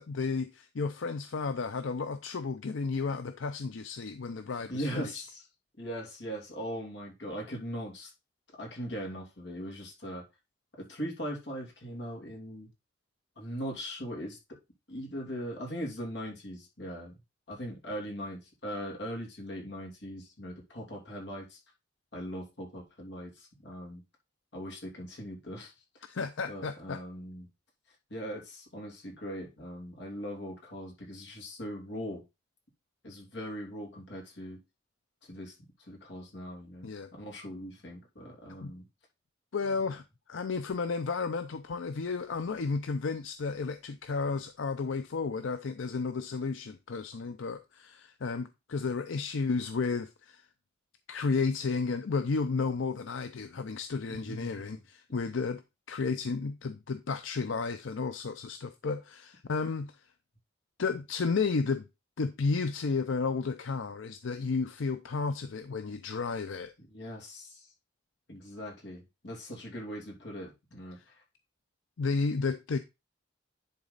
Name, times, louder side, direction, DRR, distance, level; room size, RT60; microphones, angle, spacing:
voice 1, 0.0-5.2 26.1-27.0 36.8-37.1 38.6-38.7 39.5-40.0 40.3-50.5 51.1-55.6 55.9-59.9 60.8-61.8 62.2-66.7 72.0-72.8, left 4 dB, 90° left, 0.5 m, -32 dB
voice 2, 4.7-5.4 5.8-8.1 8.6-10.2 10.8-12.7 13.4-14.6 14.9-17.2 17.5-21.6 22.1-24.0 24.5-25.7 26.5-27.5 28.1-32.2 33.0-34.6 35.2-38.9 39.8-40.0 54.1-54.8 55.1-55.2 66.8-67.7 68.3-71.2, equal, 65° left, 2.9 m, -40 dB
10.5 x 4.0 x 4.0 m
head